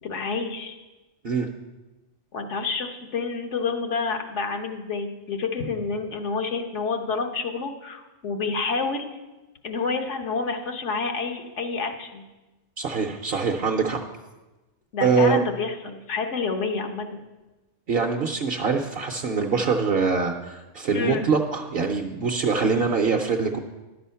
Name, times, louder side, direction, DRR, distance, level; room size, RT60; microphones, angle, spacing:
voice 1, 0.0-0.8 2.3-9.1 9.6-12.2 14.9-17.2 20.9-21.3, left 4 dB, 80° left, 4 dB, 1.3 m, -28 dB
voice 2, 12.8-14.0 15.0-15.4 17.9-23.6, right 5 dB, 60° right, 3 dB, 0.8 m, -23 dB
11.0 x 6.8 x 5.6 m, 1.1 s
omnidirectional pair, 1.2 m